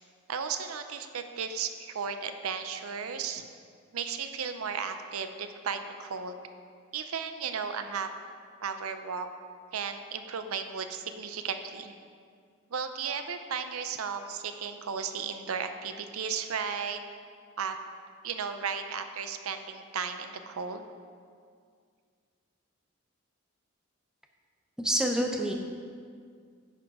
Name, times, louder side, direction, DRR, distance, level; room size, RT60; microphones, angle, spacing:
voice 1, 0.3-3.5 3.9-6.4 6.9-8.1 8.6-9.3 9.7-11.9 12.7-17.0 17.6-17.8 18.2-20.8, right 6 dB, 85° right, 8 dB, 0.6 m, -35 dB
voice 2, 24.8-25.5, right 1 dB, 5° right, 2 dB, 0.5 m, -27 dB
9.7 x 6.2 x 4.8 m, 2.1 s
head